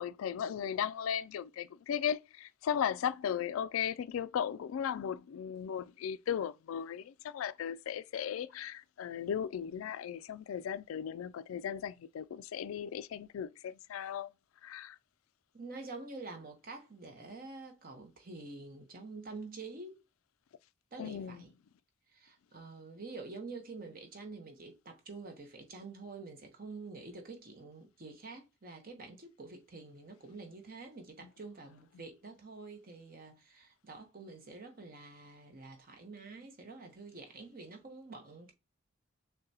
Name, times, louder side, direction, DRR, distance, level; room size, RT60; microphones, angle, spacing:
voice 1, 0.0-14.3 14.6-15.0 21.0-21.4, left 8 dB, 85° left, 0.3 m, -36 dB
voice 2, 15.5-20.0 20.9-21.5 22.1-38.5, right 3 dB, 45° right, 0.9 m, -47 dB
6.4 x 2.2 x 2.8 m
head